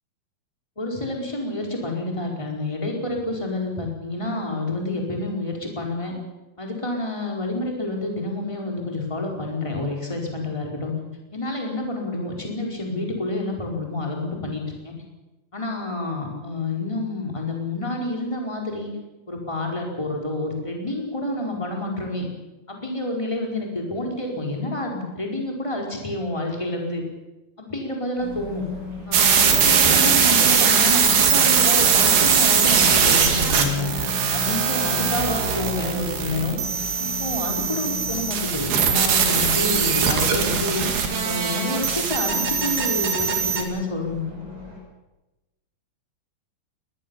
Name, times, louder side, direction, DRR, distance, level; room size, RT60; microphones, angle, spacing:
voice 1, 0.8-6.1 6.6-10.9 11.3-14.9 15.5-18.9 19.3-22.3 22.7-27.0 27.6-28.7 29.1-33.9 34.3-36.6 37.0-40.8 41.2-44.2, left 2 dB, 10° left, 0 dB, 4.4 m, -28 dB
sound 1, 28.2-44.8, left 4 dB, 50° right, 8.0 m, -37 dB
sound 2, 29.1-43.6, right 7 dB, 85° right, 4.4 m, -20 dB
22.0 x 19.5 x 7.2 m, 1.0 s
omnidirectional pair, 4.4 m